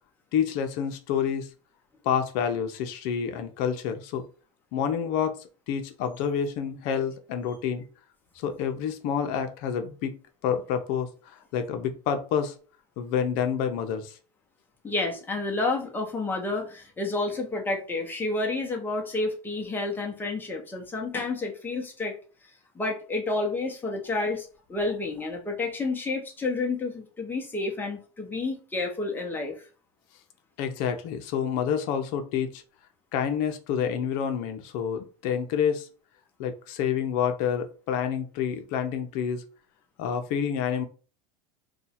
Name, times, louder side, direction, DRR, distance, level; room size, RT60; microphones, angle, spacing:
voice 1, 0.3-1.5 2.0-4.2 4.7-5.4 5.7-7.8 8.4-10.1 10.4-11.1 11.5-12.5 13.0-14.1 30.6-32.6 33.1-35.9 36.4-39.4 40.0-40.9, left 8 dB, 55° left, 7 dB, 0.7 m, -28 dB
voice 2, 14.8-22.2 22.7-29.7, left 3 dB, 10° left, 1 dB, 0.9 m, -30 dB
2.7 x 2.3 x 4.2 m, 0.37 s
supercardioid pair, 135°, 17 cm